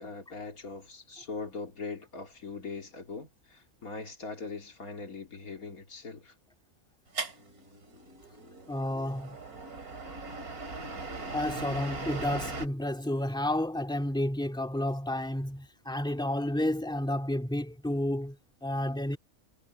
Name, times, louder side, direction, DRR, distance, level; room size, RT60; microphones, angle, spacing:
voice 1, 0.0-6.3, left 4 dB, 70° left, 3.1 m, -41 dB
sound 1, 7.1-12.7, right 3 dB, 75° right, 3.7 m, -39 dB
voice 2, 8.7-9.4 11.3-19.2, left 1 dB, 5° left, 2.8 m, -31 dB
omnidirectional pair, 1.6 m